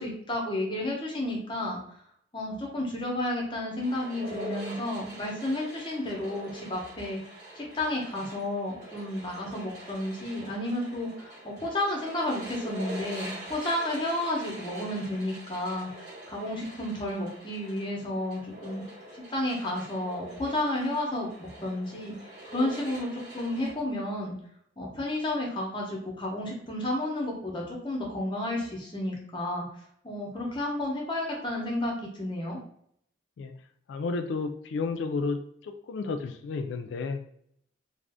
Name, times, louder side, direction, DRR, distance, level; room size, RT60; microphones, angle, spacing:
voice 1, 0.0-1.8 2.3-7.2 7.5-18.8 19.1-24.4 24.8-29.6 30.0-32.6, left 1 dB, 25° left, -1 dB, 0.7 m, -32 dB
sound 1, 3.8-23.7, right 1 dB, 45° right, 1.1 m, -44 dB
voice 2, 33.9-37.2, left 4 dB, 75° left, 7 dB, 0.3 m, -32 dB
2.5 x 2.0 x 3.3 m, 0.67 s
head